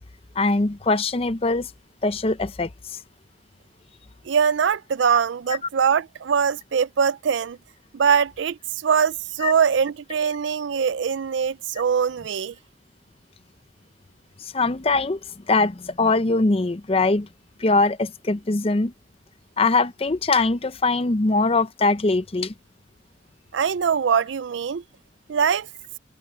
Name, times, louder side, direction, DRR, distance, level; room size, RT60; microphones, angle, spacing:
voice 1, 0.4-1.7 2.0-3.0 9.4-9.5 14.4-15.2 15.5-17.3 17.6-18.9 19.6-22.5, left 3 dB, 30° left, 0.6 m, -22 dB
voice 2, 4.3-7.6 7.9-12.5 23.5-24.8 25.3-25.7, right 7 dB, 75° right, 0.4 m, -22 dB
head